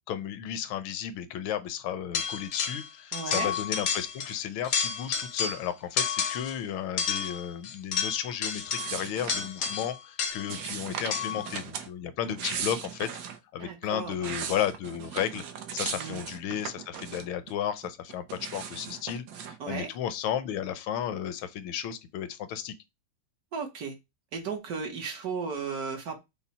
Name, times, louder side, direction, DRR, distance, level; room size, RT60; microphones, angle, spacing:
voice 1, 0.1-13.1 13.5-15.4 15.7-22.7, left 10 dB, 85° left, 1.4 m, -33 dB
sound 1, 2.1-2.9 3.1-4.4 4.6-5.7 6.0-6.6 7.0-10.6 11.1-11.5, left 6 dB, 65° left, 0.7 m, -31 dB
voice 2, 3.1-3.5 13.6-14.4 16.0-16.3 19.6-19.9 23.5-24.0 24.3-26.2, right 5 dB, 60° right, 1.1 m, -35 dB
sound 2, 8.8-9.9 10.5-11.9 12.2-13.4 13.9-17.5 17.8-19.6, right 7 dB, 75° right, 0.8 m, -38 dB
5.6 x 2.1 x 4.0 m
omnidirectional pair, 2.2 m